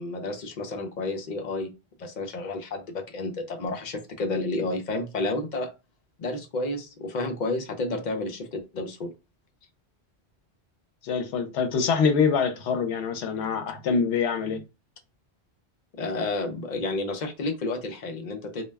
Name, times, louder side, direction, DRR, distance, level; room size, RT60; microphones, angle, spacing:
voice 1, 0.0-1.7 2.0-5.7 6.2-9.1 16.0-18.6, left 2 dB, 55° left, 0.5 m, -31 dB
voice 2, 11.0-14.6, left 5 dB, 80° left, 0.9 m, -25 dB
2.2 x 2.1 x 3.3 m
omnidirectional pair, 1.1 m